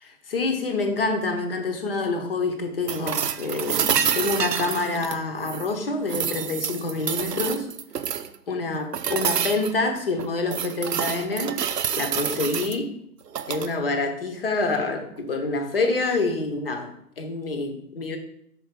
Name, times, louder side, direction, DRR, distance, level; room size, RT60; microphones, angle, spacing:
voice 1, 0.0-7.7 8.5-11.6 11.9-12.9 13.5-18.2, left 3 dB, 35° left, 6 dB, 1.0 m, -27 dB
sound 1, 2.9-5.7 6.1-8.4 8.9-9.7 10.2-12.8 13.3-13.7 15.7-15.8, right 8 dB, 80° right, 0.7 m, -28 dB
5.3 x 4.7 x 5.1 m, 0.70 s
figure-of-eight pair, 150°, 48 cm